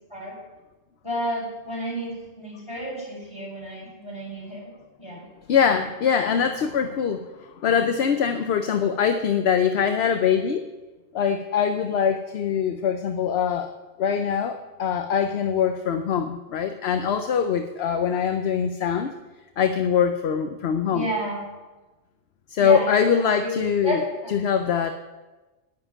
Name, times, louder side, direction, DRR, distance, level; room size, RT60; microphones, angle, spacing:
voice 1, 1.0-4.7 5.0-5.3 20.9-21.4 22.6-23.5 23.8-24.0 24.2-24.3, equal, 25° left, -5 dB, 5.6 m, -31 dB
voice 2, 5.5-10.6 11.1-13.7 14.0-19.1 19.6-21.1 22.5-24.0 24.3-24.9, left 7 dB, 65° left, 8 dB, 0.9 m, -23 dB
10.5 x 7.6 x 9.6 m, 1.2 s
omnidirectional pair, 1.2 m